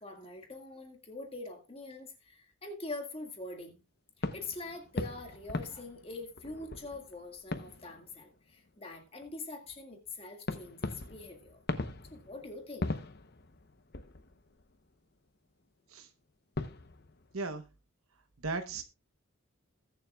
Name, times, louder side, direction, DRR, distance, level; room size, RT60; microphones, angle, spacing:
voice 1, 0.0-3.8 4.3-11.6 12.1-12.9, left 2 dB, 25° left, 1.9 m, -44 dB
sound 1, 4.2-8.7 9.1-9.2 10.5-15.0 16.3-16.4 16.5-17.5, left 2 dB, 50° left, 0.9 m, -40 dB
voice 2, 18.4-18.8, right 3 dB, 80° right, 1.0 m, -36 dB
21.0 x 7.1 x 2.3 m
head